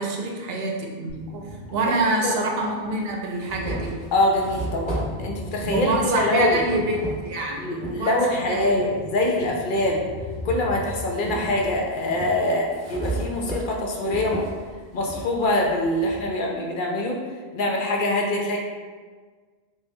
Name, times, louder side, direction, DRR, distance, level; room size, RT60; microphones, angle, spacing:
voice 1, 0.0-4.0 5.7-8.8, right 2 dB, 75° right, 0 dB, 0.8 m, -26 dB
sound 1, 1.1-2.0 2.4-2.5 3.2-11.1, left 1 dB, 40° left, 0.3 m, -40 dB
sound 2, 1.1-1.2 2.3-2.4 2.8-8.0 8.5-9.7 10.1-16.3, right 2 dB, 25° right, 1.2 m, -34 dB
voice 2, 4.1-6.6 7.5-10.1 10.4-14.5 14.9-17.2 17.5-18.6, left 1 dB, 60° left, 0 dB, 0.7 m, -24 dB
4.0 x 3.4 x 2.2 m, 1.5 s
omnidirectional pair, 1.1 m